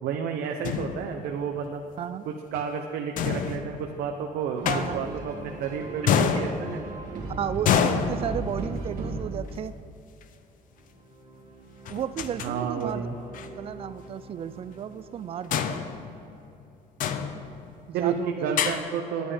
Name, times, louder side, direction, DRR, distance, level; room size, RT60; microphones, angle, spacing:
voice 1, 0.0-1.9 2.3-6.9 12.4-13.1 17.9-19.3, right 6 dB, 90° right, 3 dB, 0.7 m, -31 dB
sound 1, 0.6-1.5 3.2-4.1 4.7-5.5 6.1-7.1 7.7-8.9 10.2-10.3 11.9-12.5 12.8-12.9 13.3-13.5 15.5-16.6 17.0-17.8 18.6-18.8, left 7 dB, 55° left, 0.6 m, -28 dB
voice 2, 4.6-5.1 6.2-6.4 7.4-9.7 11.9-13.1 13.6-15.8 17.9-18.5, right 9 dB, 35° right, 14 dB, 0.4 m, -33 dB
sound 2, 4.6-9.8 10.9-15.8, right 2 dB, 55° right, 1.8 m, -38 dB
9.9 x 9.3 x 4.9 m, 2.8 s
cardioid pair, 160°, 16 cm